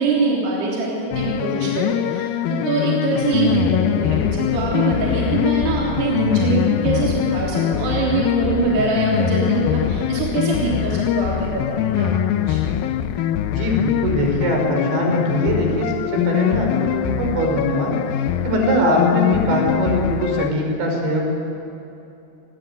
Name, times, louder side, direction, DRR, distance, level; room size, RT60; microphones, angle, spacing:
voice 1, 0.0-12.6, right 3 dB, 65° right, -4 dB, 5.5 m, -23 dB
sound 1, 1.1-20.5, left 11 dB, 85° left, 2.1 m, -23 dB
voice 2, 13.6-17.9 18.4-21.2, equal, 80° right, 2 dB, 7.2 m, -21 dB
28.0 x 21.5 x 9.4 m, 2.8 s
omnidirectional pair, 5.1 m